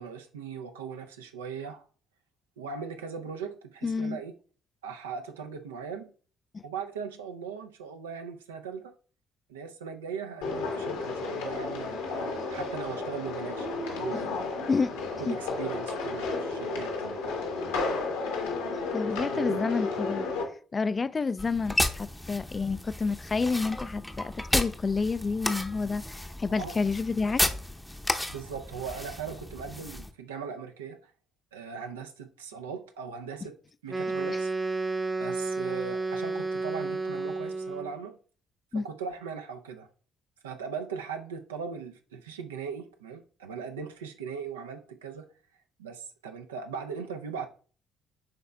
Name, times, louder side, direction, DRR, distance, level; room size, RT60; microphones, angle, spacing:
voice 1, 0.0-1.8 2.6-4.3 4.8-6.1 6.6-8.9 9.5-14.3 15.2-16.9 19.2-19.6 26.6-26.7 28.3-31.1 31.5-33.6 33.8-34.5 35.2-38.2 38.7-39.9 40.4-45.3 45.8-47.5, right 6 dB, 80° right, 0.6 m, -39 dB
voice 2, 3.8-4.2 6.5-6.6 14.1-14.2 14.7-15.0 15.3-15.4 18.9-20.3 20.7-27.4 38.7-38.8, left 4 dB, 30° left, 0.3 m, -29 dB
sound 1, 10.4-20.4, left 3 dB, 75° left, 1.2 m, -32 dB
sound 2, 21.4-30.1, left 1 dB, 5° left, 0.7 m, -33 dB
Wind instrument woodwind instrument, 33.9-38.0, right 3 dB, 25° right, 0.9 m, -31 dB
11.0 x 4.1 x 2.3 m
figure-of-eight pair, 45°, 0 cm